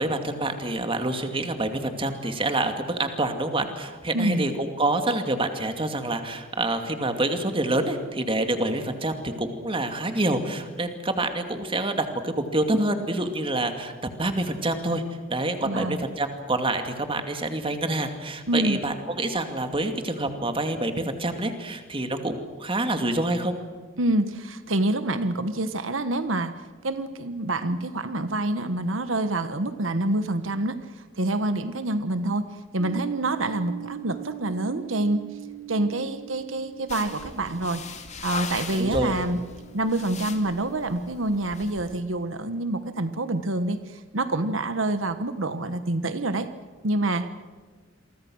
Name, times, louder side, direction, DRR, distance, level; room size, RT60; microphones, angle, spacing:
voice 1, 0.0-15.0 15.3-23.5 38.7-39.2, right 2 dB, 25° right, 6 dB, 2.4 m, -27 dB
voice 2, 15.6-16.0 18.5-18.8 24.0-26.5 26.8-30.8 31.2-32.4 32.7-35.2 35.7-37.8 38.2-39.4 39.7-46.5 46.8-47.3, right 2 dB, 85° right, 10 dB, 1.3 m, -26 dB
sound 1, 32.8-40.6, right 12 dB, 45° right, 2.0 m, -42 dB
sound 2, 36.9-42.0, left 4 dB, 35° left, 2.5 m, -39 dB
28.5 x 24.0 x 6.4 m, 1.4 s
head